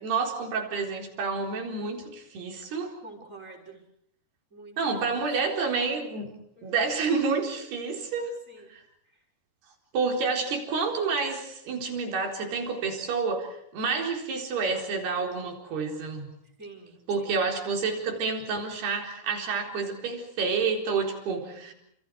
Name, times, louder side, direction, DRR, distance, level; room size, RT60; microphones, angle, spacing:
voice 1, 0.0-2.9 4.8-6.3 6.6-8.3 8.7-8.8 9.9-16.3 17.1-21.7, right 4 dB, 80° right, 3 dB, 6.3 m, -29 dB
voice 2, 3.0-3.8 4.5-4.8 6.6-6.8 8.5-8.7 16.6-17.3 21.3-21.7, right 3 dB, 20° right, 1 dB, 6.4 m, -47 dB
29.5 x 28.0 x 4.8 m, 0.71 s
omnidirectional pair, 4.5 m